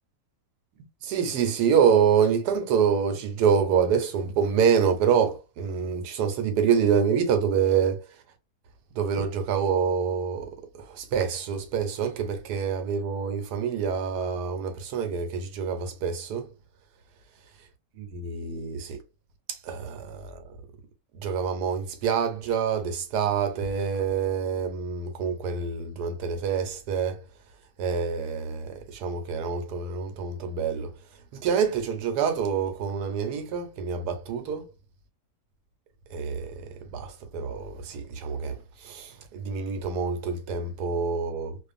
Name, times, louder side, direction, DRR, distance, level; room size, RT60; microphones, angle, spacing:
voice 1, 1.0-8.0 8.9-10.5 10.8-16.5 18.0-19.0 19.5-20.4 21.1-27.2 27.8-30.9 31.3-34.7 36.1-41.6, right 6 dB, 80° right, 1.2 m, -26 dB
2.5 x 2.4 x 2.4 m
omnidirectional pair, 1.7 m